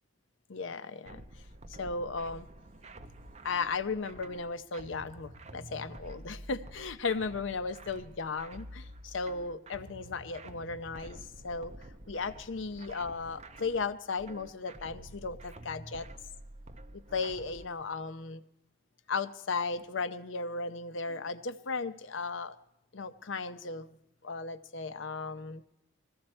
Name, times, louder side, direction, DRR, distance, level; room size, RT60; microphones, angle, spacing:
voice 1, 0.5-1.2 1.8-2.5 3.4-11.7 12.1-16.1 16.9-18.4 19.1-22.6 22.9-24.0 24.2-25.6, left 4 dB, 75° left, 11 dB, 0.7 m, -36 dB
sound 1, 1.1-17.7, right 1 dB, 35° right, 0.7 m, -49 dB
20.0 x 15.0 x 4.3 m, 0.87 s
head